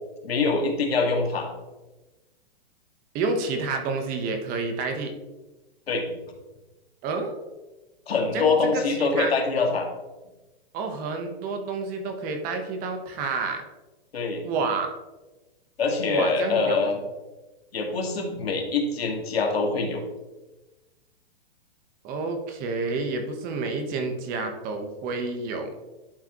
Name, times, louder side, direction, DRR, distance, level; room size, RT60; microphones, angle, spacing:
voice 1, 0.2-1.5 5.9-6.2 8.1-9.9 14.1-14.4 15.8-17.0 17.7-20.0, left 4 dB, 85° left, 2 dB, 1.8 m, -24 dB
voice 2, 3.1-5.1 7.0-7.3 8.3-9.3 10.7-13.6 14.4-14.9 16.1-16.9 22.0-25.7, right 4 dB, 30° right, 6 dB, 1.0 m, -29 dB
11.0 x 4.7 x 3.0 m, 1.1 s
hypercardioid pair, 135°, 30 cm